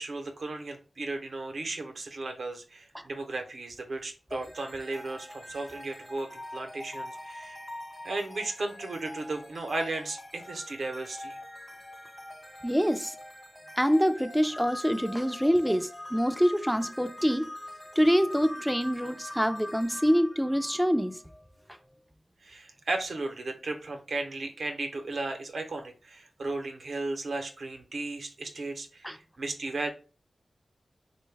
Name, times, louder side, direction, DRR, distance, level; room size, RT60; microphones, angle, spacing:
voice 1, 0.0-7.6 8.0-11.4 22.4-29.1 29.4-29.9, right 2 dB, 80° right, 0.6 m, -35 dB
sound 1, 4.3-21.5, left 1 dB, 30° left, 0.8 m, -43 dB
voice 2, 12.6-13.1 13.8-17.5 18.0-21.2 29.0-29.2, equal, ahead, 0.4 m, -25 dB
3.8 x 2.1 x 3.3 m
cardioid pair, 45°, 0 cm